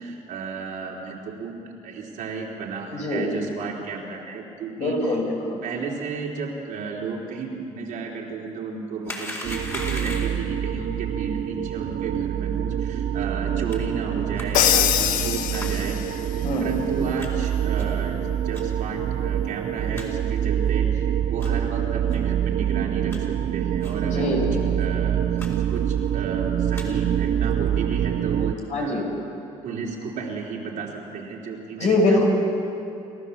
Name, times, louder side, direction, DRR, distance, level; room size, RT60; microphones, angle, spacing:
voice 1, 0.0-5.0 5.6-16.0 16.3-18.2 18.4-24.3 24.8-25.2 25.7-29.1 29.6-32.2, right 4 dB, 75° right, -2 dB, 3.7 m, -33 dB
voice 2, 2.9-3.3 4.8-5.6 16.4-16.7 24.0-24.6 28.7-29.0 31.8-32.2, left 2 dB, 60° left, 0 dB, 5.9 m, -23 dB
sound 1, 9.0-10.5 13.7-13.8 14.4-14.5 15.5-15.7 16.3-16.4 17.2-17.3 17.8-18.0 18.5-18.6 19.2-19.3 19.5-19.6 19.9-20.1 20.6-20.7 21.3-21.6 22.1-22.2 22.7-23.2 23.8-24.0 24.3-24.4 24.7-24.9 25.4-25.5 25.7-26.1 26.5-26.9 27.4-27.7, left 1 dB, 20° left, 4.4 m, -37 dB
sound 2, 9.4-28.5, right 10 dB, 55° right, 0.7 m, -26 dB
Crash cymbal, 14.5-16.2, left 11 dB, 90° left, 0.9 m, -22 dB
29.5 x 13.5 x 7.3 m, 2.6 s
cardioid pair, 100°, 14 cm